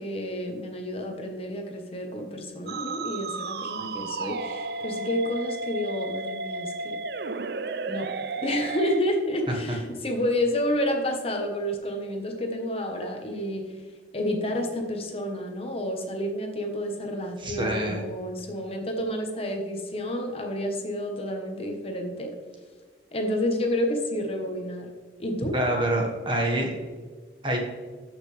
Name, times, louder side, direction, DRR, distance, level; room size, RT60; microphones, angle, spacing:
voice 1, 0.0-7.0 7.9-8.1 8.4-13.7 14.1-22.3 23.1-24.9 25.2-25.5, left 1 dB, 30° left, 3 dB, 1.2 m, -30 dB
Musical instrument, 2.7-9.0, right 3 dB, 60° right, 0.4 m, -33 dB
voice 2, 17.4-18.0 25.5-26.7 27.4-27.6, right 1 dB, 25° right, 1 dB, 1.4 m, -26 dB
13.5 x 5.8 x 3.4 m, 1.5 s
head